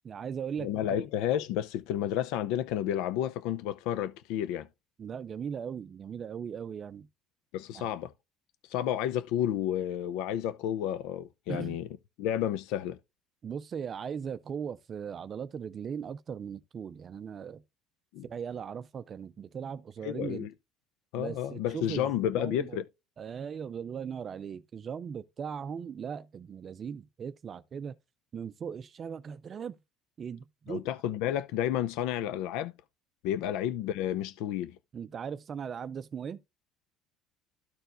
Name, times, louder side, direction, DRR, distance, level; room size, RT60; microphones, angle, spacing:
voice 1, 0.0-1.0 5.0-7.1 7.7-7.9 11.5-11.8 13.4-17.6 18.2-20.5 21.2-22.8 23.2-27.9 28.3-29.8 30.2-30.8 34.9-36.4, right 7 dB, 30° right, 0.4 m, -38 dB
voice 2, 0.6-4.7 7.5-8.1 8.6-11.9 12.2-13.0 18.1-18.2 20.0-20.5 21.1-22.8 30.7-32.7 33.2-34.8, left 11 dB, 80° left, 0.6 m, -31 dB
13.5 x 4.5 x 2.5 m
cardioid pair, 165°, 0 cm